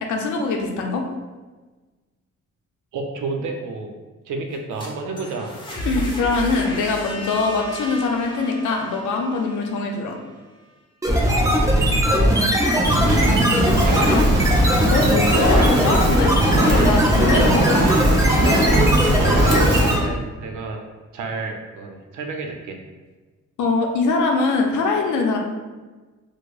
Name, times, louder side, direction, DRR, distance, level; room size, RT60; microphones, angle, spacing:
voice 1, 0.1-1.0 5.8-10.2 14.1-14.2 14.9-16.3 16.7-17.7 23.6-25.4, left 4 dB, 80° left, 2 dB, 0.6 m, -22 dB
voice 2, 2.9-3.9 4.2-5.5 12.1-14.4 19.2-20.8 21.1-22.8, right 3 dB, 75° right, 2 dB, 0.7 m, -30 dB
sound 1, 4.5-10.4, right 1 dB, 15° left, 0.9 m, -33 dB
sound 2, 11.0-20.2, equal, 10° right, 0.7 m, -18 dB
Fire, 12.8-20.0, right 1 dB, 50° right, 1.0 m, -22 dB
4.6 x 2.1 x 2.4 m, 1.3 s
cardioid pair, 90°, 30 cm